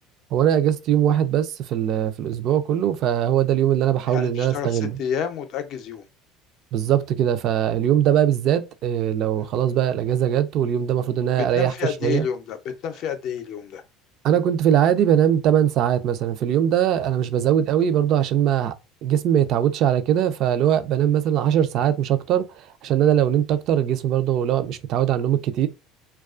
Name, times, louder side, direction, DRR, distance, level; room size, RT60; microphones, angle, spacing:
voice 1, 0.3-5.0 6.7-11.7 12.0-12.3 14.2-18.7 19.0-22.4 22.8-25.7, right 10 dB, 60° right, 0.3 m, -21 dB
voice 2, 4.1-6.1 9.4-9.5 11.4-13.8, left 8 dB, 60° left, 0.5 m, -30 dB
2.3 x 2.2 x 2.4 m
supercardioid pair, 95°, 0 cm